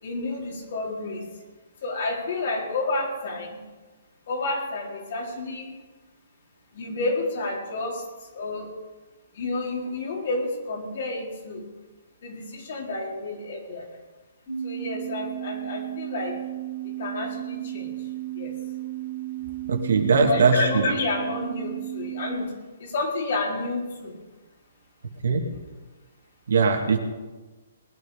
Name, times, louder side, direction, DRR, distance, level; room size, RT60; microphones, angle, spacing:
voice 1, 0.0-1.2 1.8-3.6 4.3-5.7 6.7-8.0 8.3-8.7 9.3-11.6 12.2-13.8 14.6-16.4 16.8-17.9 18.4-18.5 20.3-22.5 22.8-24.1, left 2 dB, 60° left, -1 dB, 4.3 m, -30 dB
sound 1, 14.5-22.4, right 14 dB, 30° left, 3.8 m, -34 dB
voice 2, 19.7-20.8 25.2-25.5 26.5-27.0, right 4 dB, 75° right, 3 dB, 2.3 m, -20 dB
20.5 x 9.6 x 5.1 m, 1.2 s
hypercardioid pair, 140°, 0 cm